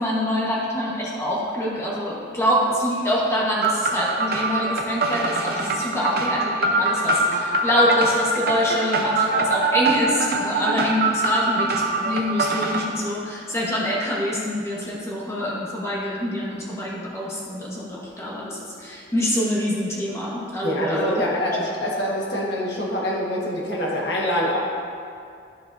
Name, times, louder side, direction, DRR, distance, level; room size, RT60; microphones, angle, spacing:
voice 1, 0.0-21.2, equal, 15° left, -6 dB, 1.1 m, -25 dB
sound 1, 3.6-12.8, right 2 dB, 55° right, 0.6 m, -23 dB
voice 2, 20.6-24.6, equal, 65° left, -3 dB, 1.3 m, -25 dB
11.0 x 7.1 x 2.6 m, 2.4 s
head